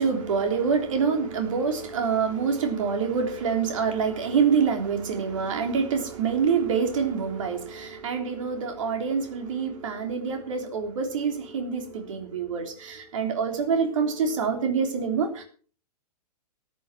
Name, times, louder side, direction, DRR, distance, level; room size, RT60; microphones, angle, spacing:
voice 1, 0.0-15.4, right 6 dB, 50° right, 5 dB, 3.5 m, -26 dB
13.5 x 11.0 x 6.0 m, 0.43 s
figure-of-eight pair, 110°, 20 cm